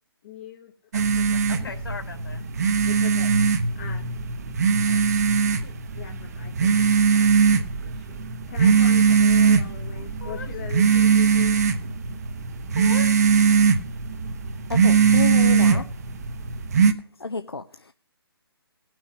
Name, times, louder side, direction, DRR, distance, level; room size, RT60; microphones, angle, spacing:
voice 1, 0.2-0.7 1.6-1.7 2.8-3.3 3.8-4.1 4.9-5.0 5.6-8.2 8.5-11.7 15.7-15.8, left 9 dB, 30° left, 4 dB, 0.9 m, -41 dB
voice 2, 0.9-2.4 10.0-10.5 12.7-13.2, left 4 dB, 60° left, 6 dB, 2.6 m, -39 dB
sound 1, 0.9-16.9, right 6 dB, 40° right, 0.9 m, -21 dB
voice 3, 14.7-15.8 17.2-17.9, left 3 dB, 80° left, 8 dB, 0.7 m, -29 dB
17.0 x 6.3 x 6.0 m, 0.41 s
figure-of-eight pair, 140°, 13 cm